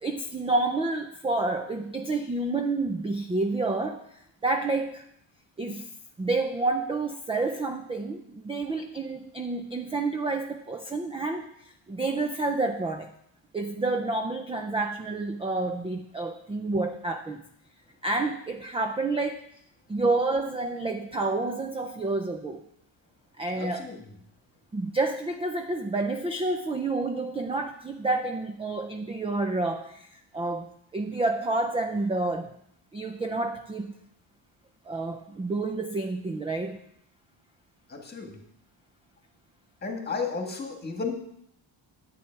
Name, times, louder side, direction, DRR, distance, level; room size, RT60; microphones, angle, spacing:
voice 1, 0.0-4.0 4.4-5.0 5.6-5.9 6.2-11.5 11.9-13.1 13.5-17.4 18.0-19.4 19.9-22.6 23.4-23.9 24.7-30.1 30.3-32.5 32.9-33.9 34.9-36.8, right 2 dB, 15° right, 5 dB, 0.3 m, -29 dB
voice 2, 23.5-24.1 37.9-38.4 39.8-41.1, left 4 dB, 20° left, 3 dB, 1.6 m, -33 dB
10.5 x 8.4 x 4.6 m, 0.74 s
cardioid pair, 165°, 48 cm